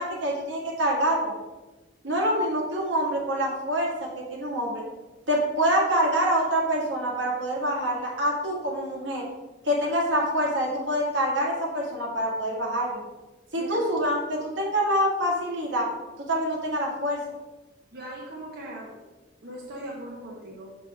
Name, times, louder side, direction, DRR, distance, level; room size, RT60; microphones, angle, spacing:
voice 1, 0.0-1.3 2.0-4.8 5.3-9.2 9.7-13.0 13.5-15.9 16.3-17.2, equal, 80° right, -2 dB, 1.8 m, -26 dB
voice 2, 17.9-18.9 19.4-20.7, right 1 dB, 60° right, -5 dB, 1.3 m, -39 dB
6.6 x 6.2 x 3.5 m, 1.1 s
head